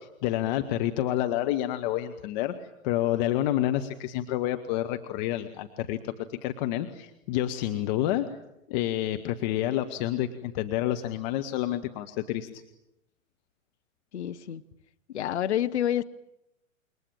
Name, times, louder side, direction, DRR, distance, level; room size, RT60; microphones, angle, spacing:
voice 1, 0.0-8.2 8.7-12.6, left 13 dB, 35° left, 7 dB, 1.5 m, -29 dB
voice 2, 14.1-14.6 15.1-16.0, left 11 dB, 55° left, 11 dB, 1.0 m, -28 dB
27.5 x 23.0 x 8.9 m, 0.85 s
figure-of-eight pair, 115°, 40 cm